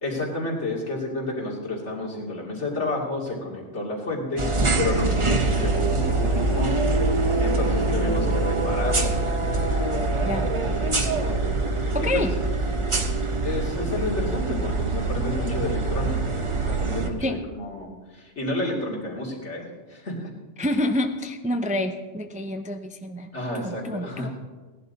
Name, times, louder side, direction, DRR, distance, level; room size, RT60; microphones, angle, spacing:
voice 1, 0.0-6.7 7.1-9.2 11.7-12.2 13.4-16.4 16.6-20.3 23.3-24.3, left 2 dB, 75° left, -4 dB, 3.1 m, -30 dB
sound 1, 4.4-17.1, right 2 dB, 30° right, 0.9 m, -24 dB
voice 2, 11.9-12.3 17.2-17.4 20.6-23.3 23.5-24.3, left 1 dB, 10° right, 6 dB, 0.4 m, -27 dB
17.0 x 11.0 x 4.1 m, 1.3 s
omnidirectional pair, 1.2 m